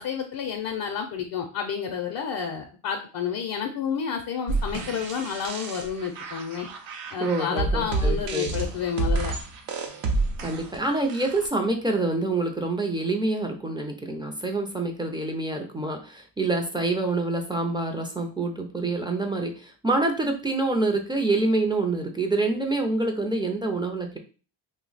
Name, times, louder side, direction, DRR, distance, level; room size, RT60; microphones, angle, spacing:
voice 1, 0.0-6.7 7.1-9.3, left 7 dB, 55° left, 3 dB, 0.5 m, -30 dB
sound 1, 4.5-11.5, right 3 dB, 90° right, 0.7 m, -29 dB
voice 2, 7.2-8.6 10.4-24.2, right 2 dB, 10° right, 3 dB, 0.4 m, -26 dB
2.7 x 2.1 x 3.9 m, 0.36 s
cardioid pair, 105°, 45 cm